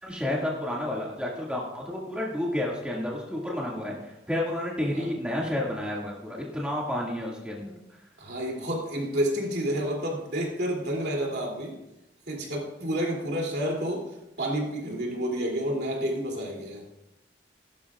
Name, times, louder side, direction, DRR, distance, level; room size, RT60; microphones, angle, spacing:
voice 1, 0.0-7.7, left 1 dB, 5° right, -4 dB, 2.1 m, -31 dB
voice 2, 8.2-11.8 12.3-16.8, equal, 70° right, -1 dB, 3.0 m, -30 dB
16.5 x 12.0 x 2.5 m, 0.92 s
head